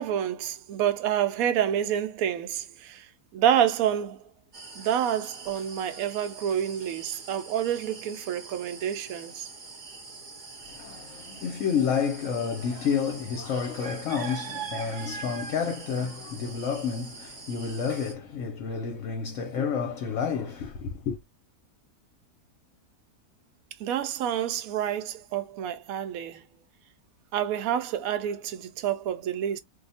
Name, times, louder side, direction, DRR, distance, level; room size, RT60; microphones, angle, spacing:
voice 1, 0.0-4.3 4.7-9.5 23.8-26.4 27.3-29.6, right 10 dB, 70° right, 0.9 m, -28 dB
sound 1, 4.5-18.1, right 4 dB, 40° right, 0.7 m, -43 dB
voice 2, 10.6-21.2, left 6 dB, 60° left, 1.0 m, -30 dB
2.6 x 2.3 x 4.0 m
omnidirectional pair, 1.7 m